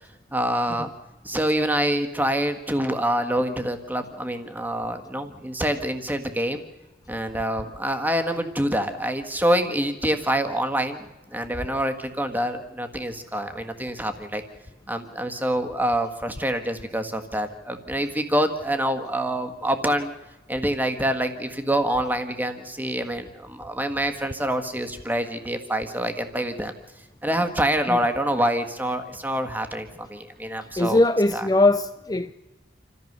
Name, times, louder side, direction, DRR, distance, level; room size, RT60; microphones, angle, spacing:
voice 1, 0.3-0.9 1.2-6.6 7.1-14.4 14.9-20.1 20.5-26.7 27.2-31.0 31.3-31.4, right 1 dB, 10° right, 1.6 m, -26 dB
voice 2, 30.8-32.3, left 2 dB, 20° left, 0.6 m, -21 dB
28.0 x 14.0 x 6.7 m
head